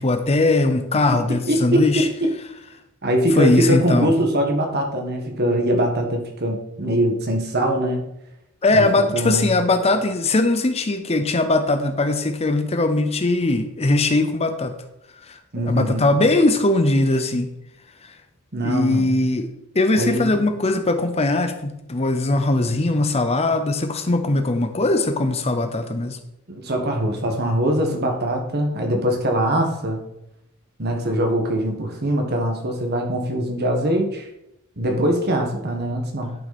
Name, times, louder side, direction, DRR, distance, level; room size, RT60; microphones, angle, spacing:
voice 1, 0.0-2.1 3.3-4.1 8.6-14.7 15.2-17.5 18.0-18.2 18.6-19.5 19.7-26.2, left 2 dB, 30° left, 8 dB, 0.7 m, -20 dB
voice 2, 1.5-2.3 3.0-8.0 8.7-8.9 9.1-9.6 15.5-16.1 18.5-19.2 20.0-20.4 26.5-30.0 30.8-34.3 34.8-36.3, right 1 dB, 45° right, 3 dB, 1.6 m, -22 dB
11.0 x 5.8 x 4.2 m, 0.85 s
head